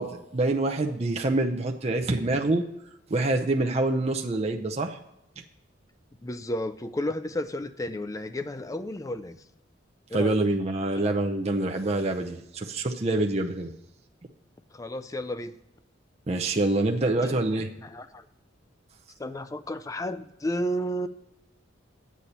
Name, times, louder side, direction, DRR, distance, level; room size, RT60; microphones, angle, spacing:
voice 1, 0.0-2.6 3.1-5.0 10.1-13.7 16.3-17.7, right 2 dB, 30° right, 3 dB, 0.6 m, -26 dB
voice 2, 6.2-9.4 10.1-10.4 10.9-11.1 14.7-15.6 17.2-17.4 17.8-18.3 19.2-21.1, left 1 dB, 15° left, 11 dB, 0.4 m, -32 dB
10.0 x 8.4 x 4.2 m, 0.86 s
head